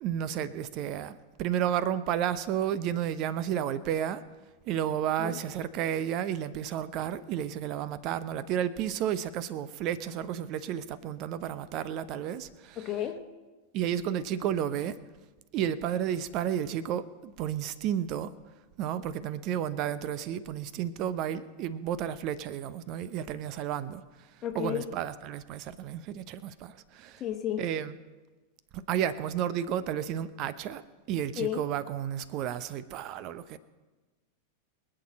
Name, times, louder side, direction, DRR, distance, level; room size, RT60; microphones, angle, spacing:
voice 1, 0.0-4.2 4.6-13.0 13.7-15.0 15.5-18.3 18.8-24.0 24.5-27.2 27.6-28.0 28.7-30.8 31.1-33.6, right 10 dB, 40° right, 16 dB, 0.8 m, -32 dB
voice 2, 12.8-13.2 24.4-24.8 27.2-27.6 31.4-31.6, left 11 dB, 30° left, 4 dB, 1.2 m, -32 dB
25.0 x 8.9 x 4.4 m, 1.2 s
figure-of-eight pair, 90°, 0 cm